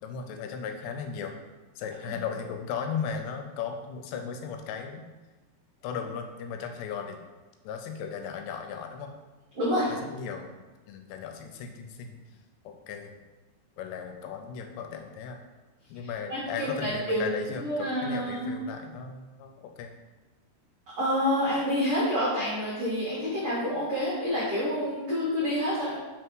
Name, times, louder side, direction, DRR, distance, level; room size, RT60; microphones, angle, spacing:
voice 1, 0.0-1.4 1.8-5.1 5.8-7.2 7.6-9.1 9.8-10.5 10.9-12.2 12.7-13.1 13.8-15.4 15.9-20.0, left 6 dB, 90° left, 5 dB, 2.8 m, -36 dB
voice 2, 9.5-9.9 16.3-17.3 17.6-18.5 20.9-26.0, equal, 80° right, -9 dB, 1.3 m, -28 dB
6.0 x 3.4 x 4.6 m, 1.2 s
omnidirectional pair, 4.9 m